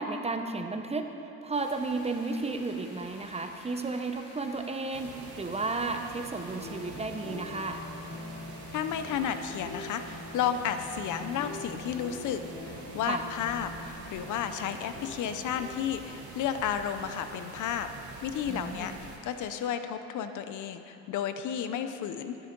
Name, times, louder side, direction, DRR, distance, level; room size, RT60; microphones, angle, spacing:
voice 1, 0.0-7.8 13.1-13.3 18.5-19.0, right 3 dB, 20° right, 6 dB, 0.8 m, -33 dB
sound 1, 1.5-19.7, left 1 dB, 50° left, 2.9 m, -53 dB
sound 2, 4.9-19.2, right 5 dB, 75° right, 1.3 m, -47 dB
sound 3, 6.5-15.7, left 3 dB, 20° left, 2.8 m, -44 dB
voice 2, 8.7-17.9 18.2-22.4, left 8 dB, 80° left, 9 dB, 0.7 m, -32 dB
12.0 x 9.0 x 5.3 m, 2.9 s
cardioid pair, 90°, 30 cm